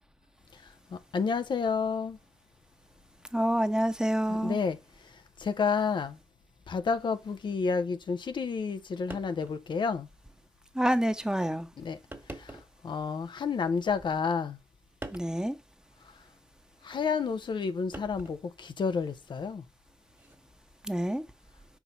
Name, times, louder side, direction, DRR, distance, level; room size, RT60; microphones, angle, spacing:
voice 1, 0.5-2.2 4.3-6.2 6.7-10.1 11.8-12.0 12.3-14.6 16.1-16.2 16.8-19.6, left 5 dB, 85° left, 0.6 m, -31 dB
voice 2, 3.3-4.6 10.7-11.7 15.1-15.6 20.8-21.2, equal, 10° right, 0.9 m, -27 dB
sound 1, 7.4-7.6 8.7-8.8 9.1-9.6 10.2-10.3 11.2-11.4 12.1-12.8 13.7-14.3 15.0-15.4 16.9-17.1 17.9-18.5 20.1-20.4, right 1 dB, 25° right, 1.5 m, -45 dB
5.4 x 4.6 x 3.9 m
cardioid pair, 45°, 8 cm